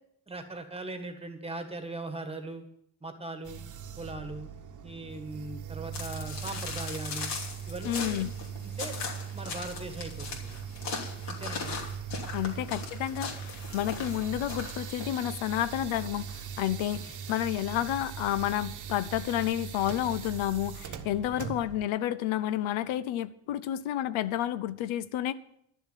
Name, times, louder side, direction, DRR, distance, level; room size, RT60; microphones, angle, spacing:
voice 1, 0.3-2.6 3.0-3.6 4.0-4.5 4.8-7.3 7.7-8.2 8.6-9.0 9.3-10.6 11.3-11.8 12.5-12.7 21.4-21.6, right 2 dB, 10° right, 7 dB, 1.6 m, -39 dB
sound 1, 3.4-21.9, right 7 dB, 40° right, 1.1 m, -40 dB
sound 2, 5.9-15.2, left 4 dB, 55° left, 3.0 m, -39 dB
voice 2, 7.8-8.3 12.3-25.3, left 12 dB, 75° left, 15 dB, 0.8 m, -30 dB
11.5 x 7.1 x 9.1 m, 0.75 s
cardioid pair, 130°, 48 cm